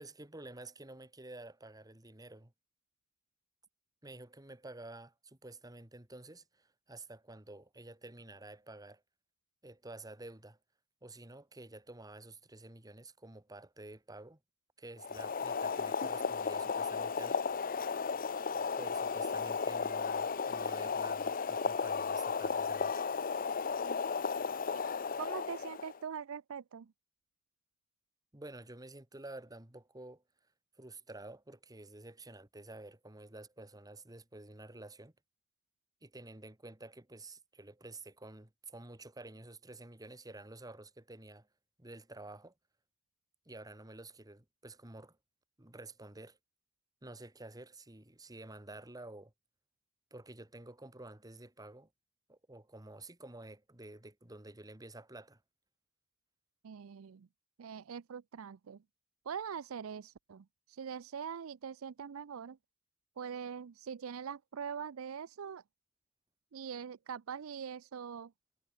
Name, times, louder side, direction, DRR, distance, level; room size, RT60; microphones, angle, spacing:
voice 1, 0.0-2.5 4.0-9.0 9.6-10.6 11.0-14.4 14.8-17.4 18.8-23.1 28.3-30.2 30.8-35.1 36.0-41.5 41.8-42.5 43.5-45.2 45.6-46.4 47.0-49.3 50.1-51.9 52.3-55.4, right 2 dB, 20° right, 1.8 m, -50 dB
Boiling, 15.0-26.0, left 5 dB, 45° left, 0.7 m, -34 dB
voice 2, 25.2-26.9 56.6-57.3 57.6-58.8 59.3-62.6 63.2-65.6 66.5-68.3, right 7 dB, 85° right, 0.5 m, -43 dB
head